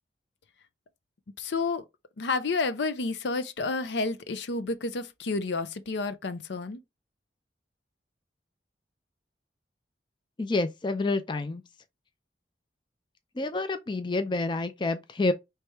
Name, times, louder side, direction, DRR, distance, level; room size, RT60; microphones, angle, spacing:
voice 1, 1.4-1.8 2.2-6.8, left 3 dB, 75° left, 0.6 m, -30 dB
voice 2, 10.4-11.6 13.4-15.3, left 2 dB, 25° left, 0.4 m, -28 dB
4.8 x 3.3 x 3.0 m
head